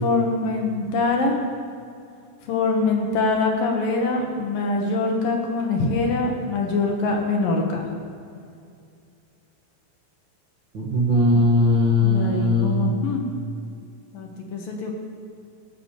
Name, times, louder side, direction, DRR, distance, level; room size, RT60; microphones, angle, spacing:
voice 1, 0.0-1.4 2.5-7.8 11.3-11.5 12.0-13.2 14.1-14.9, left 3 dB, 65° left, 1 dB, 3.1 m, -24 dB
voice 2, 10.7-13.0, left 1 dB, 50° right, -5 dB, 1.5 m, -19 dB
17.0 x 9.5 x 7.3 m, 2.4 s
omnidirectional pair, 4.7 m